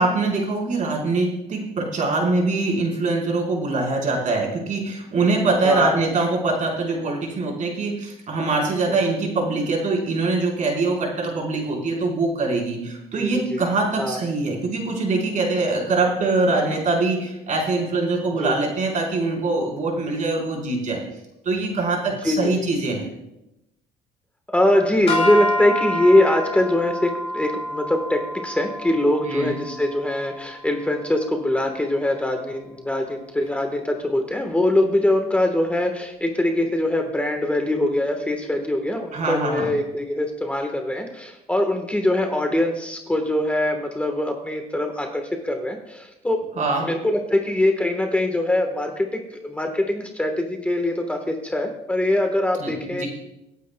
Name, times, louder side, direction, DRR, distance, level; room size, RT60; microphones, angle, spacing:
voice 1, 0.0-21.0 21.4-23.1 29.2-29.6 39.1-39.7 46.6-46.8 52.6-53.1, right 3 dB, 45° right, -1 dB, 4.4 m, -23 dB
voice 2, 5.6-6.1 8.9-9.0 13.1-13.6 14.0-14.2 18.4-18.5 22.2-22.7 24.5-46.4 46.8-53.0, left 1 dB, 10° left, 3 dB, 1.3 m, -23 dB
sound 1, 25.1-31.4, left 1 dB, 40° left, 4.9 m, -28 dB
26.0 x 9.3 x 2.3 m, 0.88 s
cardioid pair, 110°, 17 cm